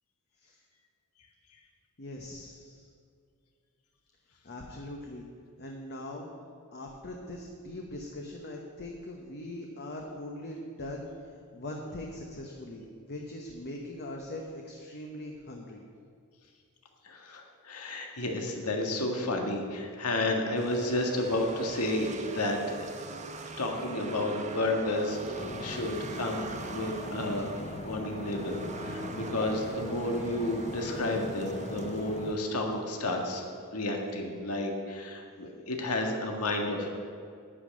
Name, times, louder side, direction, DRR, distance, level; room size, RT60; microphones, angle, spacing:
voice 1, 2.0-2.9 4.4-5.3 5.6-6.3 6.7-11.1 11.5-15.8 26.5-26.7, left 1 dB, 50° left, 1 dB, 1.0 m, -41 dB
voice 2, 17.0-22.8 23.6-27.5 27.8-33.4 33.7-36.9, left 1 dB, 85° left, 2 dB, 1.7 m, -31 dB
sound 1, 20.6-33.6, right 3 dB, 35° right, 0.8 m, -43 dB
sound 2, 25.4-32.3, left 3 dB, 30° left, 0.4 m, -41 dB
11.5 x 5.6 x 8.9 m, 2.2 s
head